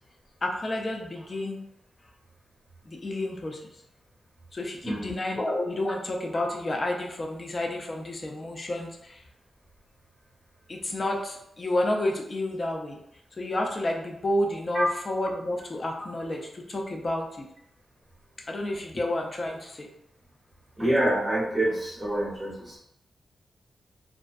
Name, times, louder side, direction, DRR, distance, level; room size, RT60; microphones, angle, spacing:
voice 1, 0.4-1.6 2.8-3.6 4.5-9.2 10.7-13.0 13.3-17.5 18.5-19.9, left 1 dB, 30° left, 1 dB, 0.4 m, -30 dB
voice 2, 4.8-5.1 14.7-14.9 20.8-22.8, right 1 dB, 15° right, -6 dB, 0.9 m, -26 dB
2.5 x 2.1 x 2.3 m, 0.75 s
wide cardioid pair, 125°, 0 cm